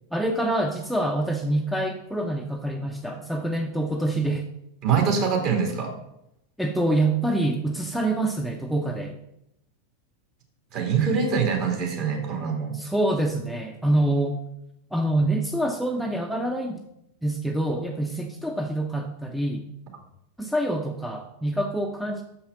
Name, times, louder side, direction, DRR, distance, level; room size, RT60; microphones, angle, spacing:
voice 1, 0.1-4.4 6.6-9.2 12.7-14.4 14.9-16.8 17.2-19.6 20.4-22.2, right 1 dB, ahead, 2 dB, 0.7 m, -26 dB
voice 2, 4.8-5.9 10.7-12.8, right 6 dB, 40° right, 1 dB, 2.4 m, -24 dB
6.5 x 5.6 x 6.6 m, 0.81 s
figure-of-eight pair, 90°, 0 cm